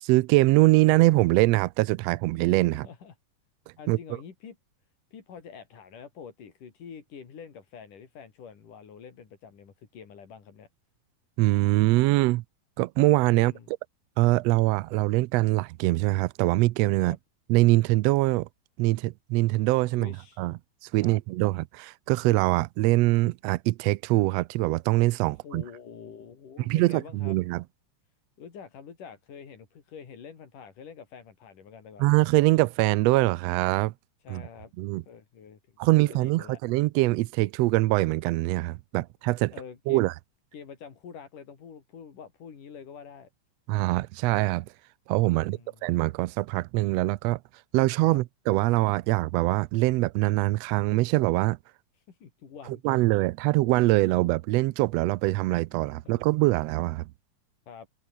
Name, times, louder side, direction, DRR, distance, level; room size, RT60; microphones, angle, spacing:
voice 1, 0.0-2.9 3.9-4.0 11.4-12.4 12.8-13.8 14.2-17.2 17.5-18.5 18.8-20.5 20.9-25.6 26.7-27.6 32.0-33.9 34.3-34.4 34.8-35.0 35.8-39.5 39.9-40.1 43.7-44.6 45.1-47.4 47.7-51.6 52.8-57.0, right 19 dB, 90° right, 1.4 m, -23 dB
voice 2, 2.7-3.1 3.8-4.6 5.1-10.7 13.3-13.7 17.0-17.2 20.0-20.5 21.0-21.2 25.4-27.4 28.4-32.1 34.2-34.7 35.1-36.6 39.5-40.1 40.5-43.3 45.3-45.8 48.1-48.2 52.1-53.0 56.0-56.2 57.7-57.9, left 6 dB, 90° left, 5.0 m, -46 dB
omnidirectional pair, 3.6 m